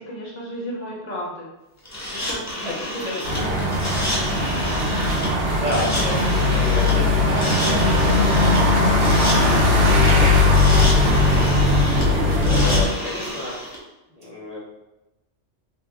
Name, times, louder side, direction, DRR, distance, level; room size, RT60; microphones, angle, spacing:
voice 1, 0.0-1.5 2.1-4.6, equal, 40° left, -4 dB, 0.8 m, -35 dB
sound 1, 1.9-13.8, equal, 25° left, 0.4 m, -29 dB
sound 2, 3.2-12.8, left 2 dB, 60° right, 0.9 m, -18 dB
voice 2, 5.4-8.6 8.9-10.3 10.9-13.6 14.1-14.6, left 1 dB, 35° right, -6 dB, 0.9 m, -32 dB
3.3 x 2.7 x 2.4 m, 0.95 s
omnidirectional pair, 1.2 m